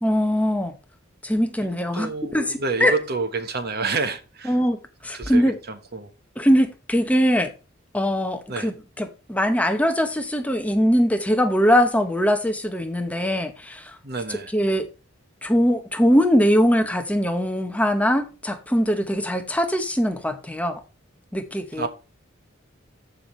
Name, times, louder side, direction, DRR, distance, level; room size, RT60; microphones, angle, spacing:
voice 1, 0.0-0.7 1.2-3.0 4.4-4.8 5.0-5.6 6.4-7.5 7.9-13.9 14.5-14.9 15.4-20.8 21.3-21.9, equal, 5° left, 0.8 m, -21 dB
voice 2, 1.6-4.6 5.1-6.1 8.5-8.7 14.0-14.5 21.8-21.9, right 4 dB, 50° right, 1.2 m, -29 dB
14.0 x 5.6 x 3.2 m
head